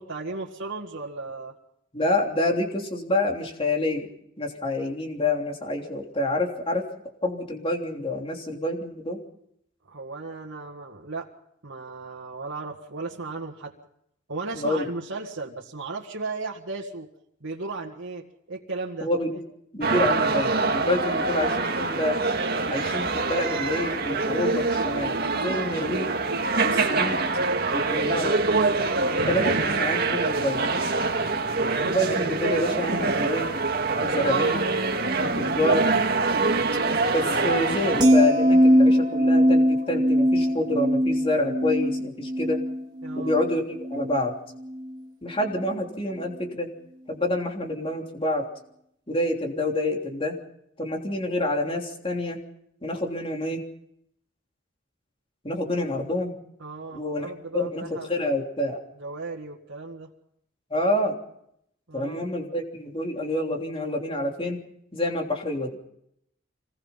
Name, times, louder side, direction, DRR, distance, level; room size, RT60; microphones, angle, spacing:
voice 1, 0.0-1.6 9.8-11.3 11.6-13.7 14.3-17.1 17.4-19.4 25.5-25.9 28.8-29.3 43.0-43.4 56.6-60.1 61.9-62.3, right 3 dB, 90° right, -2 dB, 2.0 m, -36 dB
voice 2, 1.9-4.1 4.4-6.9 7.2-9.2 14.5-14.8 19.0-19.4 19.7-22.2 22.7-26.1 26.6-27.3 27.7-28.4 29.3-30.8 31.8-33.5 34.0-34.7 35.2-35.9 37.1-42.6 43.2-44.3 45.2-46.7 47.1-48.5 49.1-50.4 50.8-52.4 52.8-53.7 55.4-56.3 56.9-58.8 60.7-61.2 61.9-64.6 64.9-65.8, left 1 dB, 30° left, 2 dB, 3.3 m, -27 dB
sound 1, 19.8-38.0, right 3 dB, 50° right, 2.2 m, -25 dB
sound 2, 38.0-44.3 44.6-44.9, equal, 20° right, 2.3 m, -21 dB
26.0 x 20.0 x 5.7 m, 0.75 s
head